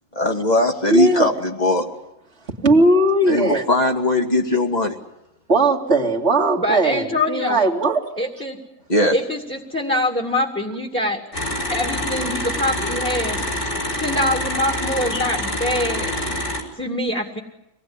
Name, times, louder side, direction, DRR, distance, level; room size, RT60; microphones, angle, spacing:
voice 1, 0.2-1.9 3.3-4.9 8.9-9.2, left 1 dB, 30° left, 3 dB, 2.5 m, -19 dB
voice 2, 0.9-1.3 2.5-3.6 5.5-8.0, right 2 dB, 55° right, 0 dB, 2.9 m, -18 dB
voice 3, 6.6-7.7 8.2-8.6 9.1-11.2 11.7-13.4 14.0-16.1 16.8-17.4, left 1 dB, 10° left, 2 dB, 2.4 m, -24 dB
sound 1, 11.3-16.6, left 1 dB, 60° left, 5.4 m, -26 dB
25.5 x 19.0 x 9.8 m, 0.89 s
omnidirectional pair, 1.4 m